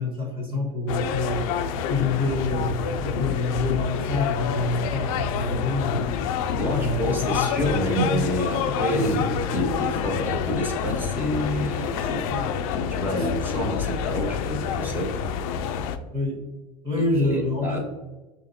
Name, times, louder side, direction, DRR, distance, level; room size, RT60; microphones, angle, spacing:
voice 1, 0.0-1.5 1.9-6.1 6.6-8.2 8.5-9.4 11.9-12.5 13.1-13.3 16.1-16.4 16.8-17.8, left 2 dB, 30° right, -1 dB, 1.4 m, -27 dB
sound 1, 0.9-16.0, left 7 dB, 70° left, 0.4 m, -28 dB
voice 2, 6.6-12.1 12.9-15.2 16.9-17.8, equal, 10° right, 0 dB, 1.2 m, -28 dB
5.6 x 3.1 x 2.6 m, 1.2 s
supercardioid pair, 120°, 18 cm